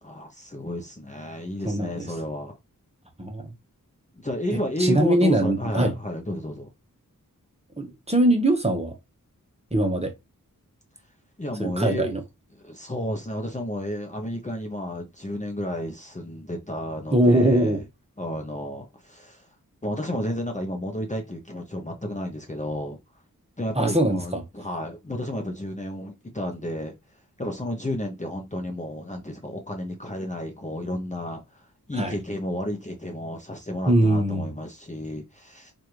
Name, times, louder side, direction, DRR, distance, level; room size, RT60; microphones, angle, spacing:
voice 1, 0.0-2.6 4.2-6.7 11.4-12.2 12.5-17.8 18.2-19.5 19.8-23.0 23.6-26.9 27.4-35.7, left 1 dB, 20° left, 0.8 m, -32 dB
voice 2, 1.6-2.1 3.2-3.5 4.5-5.9 7.8-8.9 9.7-10.1 11.6-12.2 17.1-17.8 23.8-24.4 32.0-32.2 33.9-34.5, right 1 dB, 20° right, 1.0 m, -22 dB
3.2 x 2.6 x 4.5 m
wide cardioid pair, 75°, 34 cm